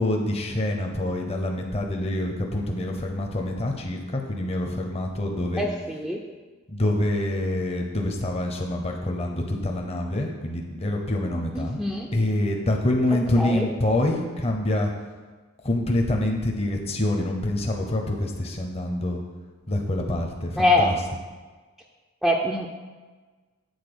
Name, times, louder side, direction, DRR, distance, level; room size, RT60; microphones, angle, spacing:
voice 1, 0.0-5.7 6.7-11.8 12.1-14.9 15.6-19.2 19.7-21.0, left 1 dB, 30° left, 1 dB, 0.8 m, -26 dB
voice 2, 5.6-6.2 11.5-12.1 13.4-13.7 20.6-20.9 22.2-22.7, left 1 dB, ahead, -1 dB, 0.5 m, -23 dB
8.0 x 4.2 x 6.9 m, 1.4 s
head